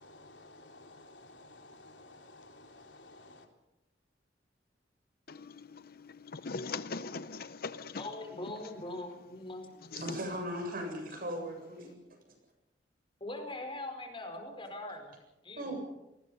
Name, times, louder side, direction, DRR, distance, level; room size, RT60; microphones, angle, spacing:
voice 1, 0.0-3.5, left 2 dB, 90° left, 3 dB, 3.6 m, -54 dB
sound 1, 5.3-11.9, left 4 dB, 55° left, 0.8 m, -43 dB
voice 2, 8.0-9.7 13.2-15.2 15.4-15.7, left 2 dB, 30° left, 5 dB, 4.4 m, -41 dB
voice 3, 10.0-11.9 15.6-15.8, equal, 55° right, 3 dB, 7.6 m, -37 dB
29.0 x 19.5 x 5.4 m, 0.93 s
head